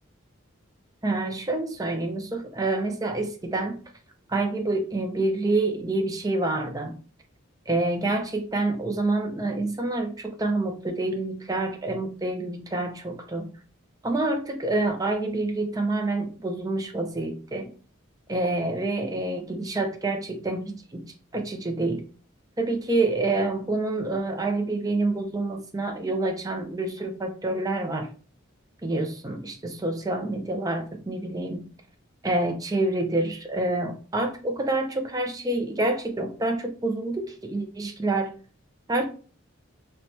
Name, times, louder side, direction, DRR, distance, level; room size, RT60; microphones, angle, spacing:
voice 1, 1.0-3.8 4.3-7.0 7.7-13.4 14.0-17.7 18.3-21.1 21.3-22.0 22.6-28.1 28.8-31.7 32.2-38.3 38.9-39.0, right 2 dB, 15° right, 4 dB, 0.4 m, -27 dB
2.8 x 2.2 x 4.0 m, 0.39 s
head